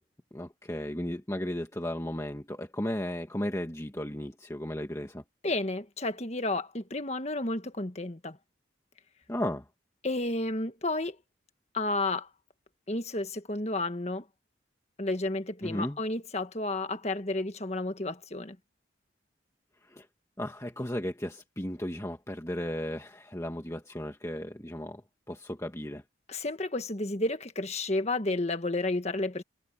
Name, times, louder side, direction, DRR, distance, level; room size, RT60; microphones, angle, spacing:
voice 1, 0.3-5.2 9.3-9.6 15.6-16.0 19.9-20.0 20.4-25.0 25.3-26.0, left 1 dB, 15° left, 1.6 m, -35 dB
voice 2, 5.4-8.4 10.0-11.2 11.7-12.3 12.9-14.2 15.0-18.6 26.3-29.4, left 2 dB, 35° left, 1.5 m, -31 dB
head